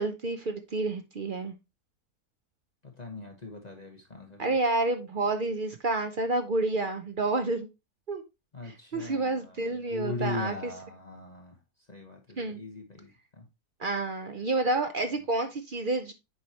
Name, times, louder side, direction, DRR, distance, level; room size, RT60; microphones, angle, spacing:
voice 1, 0.0-1.5 4.4-7.7 8.1-8.2 8.6-10.7 12.4-12.6 13.8-16.1, right 2 dB, 55° right, 0.5 m, -29 dB
voice 2, 2.8-4.5 8.5-11.6 11.9-13.5, left 3 dB, 30° left, 1.2 m, -39 dB
8.3 x 4.8 x 2.8 m
omnidirectional pair, 1.7 m